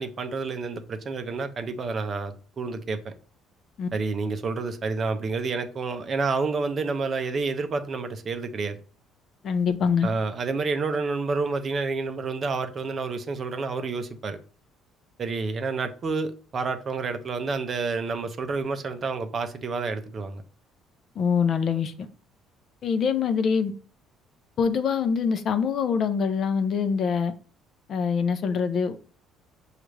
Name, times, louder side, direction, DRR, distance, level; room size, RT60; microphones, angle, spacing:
voice 1, 0.0-3.1 3.9-8.8 10.0-14.4 15.2-20.4, right 4 dB, 35° right, 0.5 m, -29 dB
voice 2, 9.4-10.1 21.2-22.1 22.8-23.7 24.6-27.3 27.9-29.0, left 6 dB, 45° left, 0.5 m, -24 dB
6.4 x 2.4 x 3.1 m
cardioid pair, 140°, 0 cm